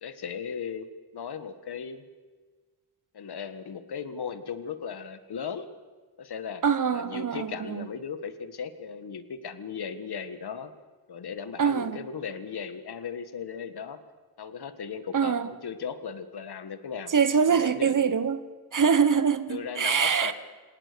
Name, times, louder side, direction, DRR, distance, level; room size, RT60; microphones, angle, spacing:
voice 1, 0.0-2.0 3.1-5.7 6.2-6.6 6.9-10.7 11.1-14.0 14.4-17.1 17.5-17.9 19.5-20.3, left 6 dB, 60° left, 1.6 m, -37 dB
voice 2, 6.6-7.9 11.6-12.0 15.1-15.5 17.1-18.4 18.7-20.3, right 6 dB, 45° right, 1.1 m, -24 dB
26.5 x 18.0 x 6.9 m
wide cardioid pair, 155°, 43 cm